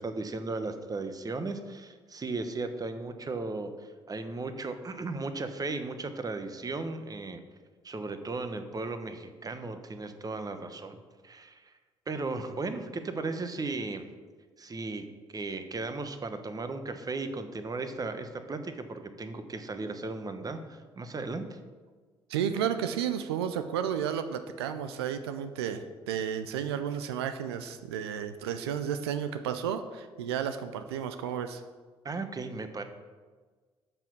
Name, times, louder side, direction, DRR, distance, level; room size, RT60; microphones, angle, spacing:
voice 1, 0.0-7.4 7.8-11.0 11.2-11.7 12.1-14.1 14.6-21.6 32.0-32.8, right 3 dB, 30° right, 8 dB, 1.0 m, -36 dB
voice 2, 22.3-31.6, right 8 dB, 90° right, 9 dB, 0.4 m, -32 dB
6.8 x 5.9 x 6.0 m, 1.4 s
hypercardioid pair, 55°, 13 cm